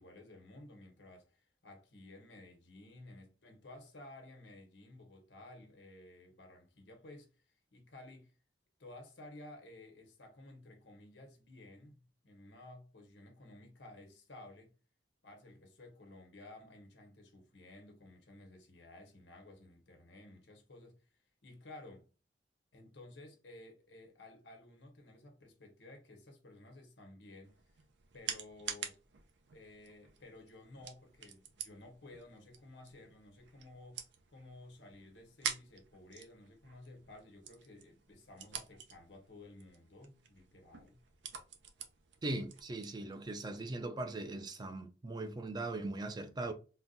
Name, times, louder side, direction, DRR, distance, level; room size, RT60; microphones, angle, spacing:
voice 1, 0.0-8.3 8.8-14.7 15.2-21.1 21.4-22.1 22.7-27.8 28.1-29.0 29.5-34.0 34.3-41.0, left 2 dB, 90° left, 1.1 m, -55 dB
sound 1, 27.4-43.8, right 7 dB, 85° right, 0.5 m, -48 dB
voice 2, 42.2-46.5, right 2 dB, 25° right, 0.4 m, -40 dB
3.8 x 2.2 x 2.6 m
head